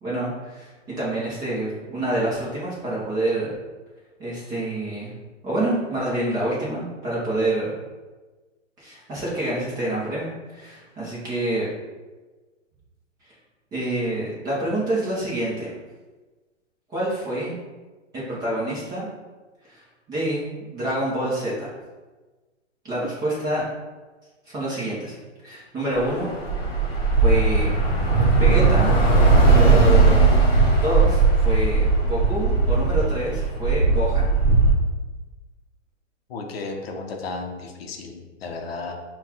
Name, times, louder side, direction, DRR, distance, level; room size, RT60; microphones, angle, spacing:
voice 1, 0.0-3.5 4.2-5.1 5.4-7.7 8.8-11.7 13.2-13.3 13.7-15.7 16.9-17.6 18.1-19.1 19.6-19.8 20.1-21.7 22.8-23.6 24.5-25.2 25.4-26.3 27.2-27.7 28.4-29.0 29.4-30.2 30.8-34.3, right 1 dB, 10° right, -8 dB, 0.6 m, -27 dB
Bus / Traffic noise roadway noise, 25.9-34.7, right 3 dB, 25° left, 1.0 m, -18 dB
voice 2, 36.3-38.9, left 3 dB, 55° left, 3 dB, 0.7 m, -34 dB
5.5 x 2.3 x 2.9 m, 1.3 s
hypercardioid pair, 155°, 36 cm